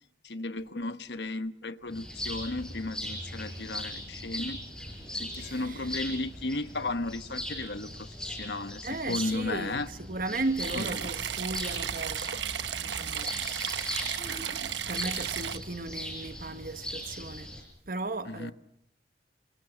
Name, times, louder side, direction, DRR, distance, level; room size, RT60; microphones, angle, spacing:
voice 1, 0.2-4.6 5.1-9.9 10.7-11.1 18.3-18.5, left 2 dB, 70° left, 1.1 m, -34 dB
sound 1, 1.9-17.6, left 1 dB, 5° left, 6.2 m, -40 dB
voice 2, 5.4-5.9 8.8-12.4 12.7-17.5 17.9-18.5, right 2 dB, 50° right, 1.3 m, -36 dB
sound 2, 10.6-15.6, right 9 dB, 80° right, 1.1 m, -34 dB
28.0 x 25.5 x 6.3 m
head